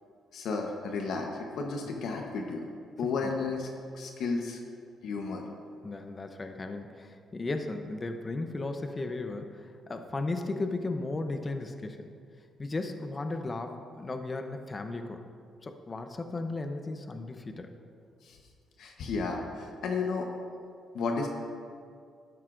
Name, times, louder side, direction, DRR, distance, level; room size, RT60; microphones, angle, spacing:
voice 1, 0.3-2.6 3.0-3.7 3.9-4.6 5.0-5.4 18.2-18.4 18.8-20.3 20.9-21.3, left 4 dB, 75° left, 2 dB, 1.0 m, -32 dB
voice 2, 5.8-12.1 12.6-15.2 15.6-17.7, left 2 dB, 30° left, 6 dB, 0.7 m, -35 dB
12.5 x 11.0 x 2.5 m, 2.3 s
cardioid pair, 90°, 0 cm